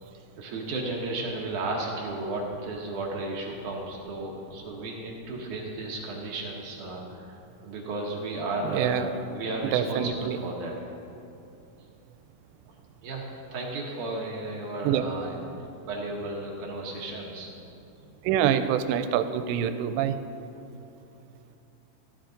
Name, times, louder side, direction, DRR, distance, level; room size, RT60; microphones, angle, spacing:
voice 1, 0.4-7.3 7.6-10.7 13.0-17.5, right 2 dB, 70° right, -2 dB, 2.0 m, -34 dB
voice 2, 8.6-9.1 9.7-10.4 14.8-15.0 18.3-20.2, right 9 dB, 90° right, 10 dB, 2.8 m, -25 dB
15.0 x 11.5 x 3.9 m, 2.7 s
omnidirectional pair, 4.9 m